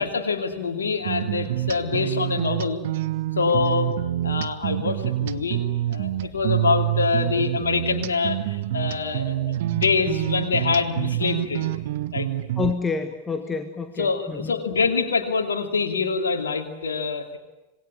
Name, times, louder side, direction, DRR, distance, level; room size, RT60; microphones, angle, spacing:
voice 1, 0.0-2.8 3.4-3.9 4.2-5.6 5.9-9.4 9.6-11.7 12.1-12.3 14.0-17.4, left 5 dB, 70° left, 4 dB, 2.6 m, -25 dB
sound 1, 1.1-12.7, right 14 dB, 55° right, 1.0 m, -27 dB
voice 2, 12.6-14.5, left 5 dB, 15° left, 7 dB, 1.6 m, -28 dB
27.0 x 20.5 x 9.8 m, 1.0 s
figure-of-eight pair, 90°, 0 cm